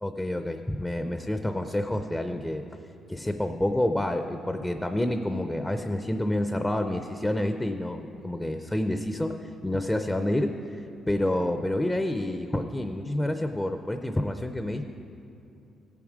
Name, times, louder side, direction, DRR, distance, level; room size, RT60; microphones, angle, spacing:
voice 1, 0.0-2.6 3.1-10.6 11.1-14.9, left 1 dB, 10° left, 7 dB, 0.6 m, -28 dB
16.5 x 7.2 x 4.9 m, 2.8 s
cardioid pair, 90°, 0 cm